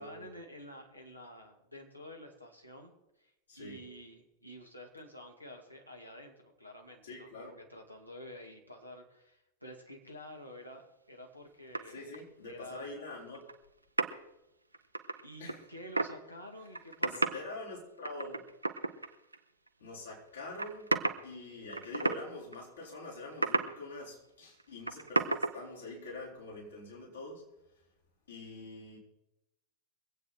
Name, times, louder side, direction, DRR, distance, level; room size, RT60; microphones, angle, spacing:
voice 1, 0.0-2.9 3.2-12.0 12.5-12.9 15.2-17.4, equal, 90° left, 1 dB, 2.3 m, -50 dB
voice 2, 3.5-3.8 7.0-7.5 11.9-13.5 15.4-15.6 17.0-18.4 19.8-20.9 21.2-27.4 28.3-29.0, left 2 dB, 70° left, -4 dB, 5.1 m, -45 dB
sound 1, 11.7-12.2 13.3-13.5 14.0-14.1 14.7-16.2 16.6-17.4 18.0-19.4 19.7-19.8 20.5-21.3 21.7-22.2 22.5-22.6 23.3-23.8 24.6-24.7 24.9-25.6, right 3 dB, 85° right, 0.8 m, -32 dB
23.0 x 8.6 x 4.4 m, 0.90 s
figure-of-eight pair, 90°, 0 cm